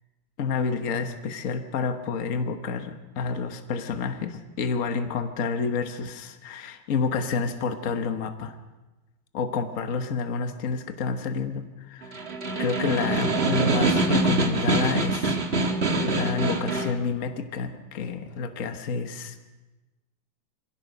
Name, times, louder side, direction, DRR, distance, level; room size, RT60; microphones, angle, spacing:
voice 1, 0.4-8.6 9.3-12.2 12.6-15.7 16.0-19.4, left 5 dB, 50° left, 7 dB, 1.4 m, -29 dB
Snare drum, 12.0-17.0, right 2 dB, 35° right, 1.7 m, -24 dB
24.0 x 16.5 x 6.6 m, 1.1 s
omnidirectional pair, 2.1 m